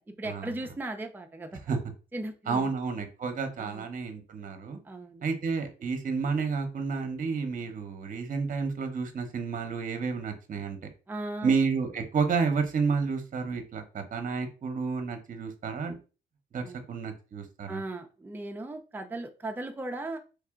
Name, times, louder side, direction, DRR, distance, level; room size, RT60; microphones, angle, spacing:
voice 1, 0.0-1.6 2.1-2.7 3.6-3.9 4.8-5.2 11.1-11.5 16.6-16.8 17.7-20.2, right 2 dB, 10° right, 4 dB, 0.5 m, -37 dB
voice 2, 2.5-4.8 5.2-10.8 11.4-16.0 16.5-17.8, right 5 dB, 40° right, 6 dB, 0.8 m, -30 dB
3.3 x 2.7 x 3.6 m, 0.33 s
cardioid pair, 90°, 20 cm